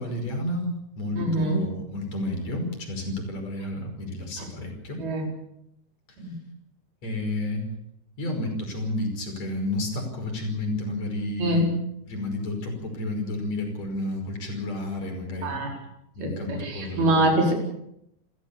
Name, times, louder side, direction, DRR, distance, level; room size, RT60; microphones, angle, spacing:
voice 1, 0.0-5.0 7.0-7.7 8.2-11.6 12.1-15.7 16.1-17.2, left 1 dB, 35° left, 3 dB, 6.3 m, -31 dB
voice 2, 1.2-1.7 4.4-4.5 5.0-5.3 6.2-6.3 11.4-11.7 15.4-15.8 16.2-17.5, right 1 dB, 55° right, 1 dB, 6.4 m, -24 dB
29.0 x 15.0 x 7.0 m, 0.79 s
omnidirectional pair, 5.3 m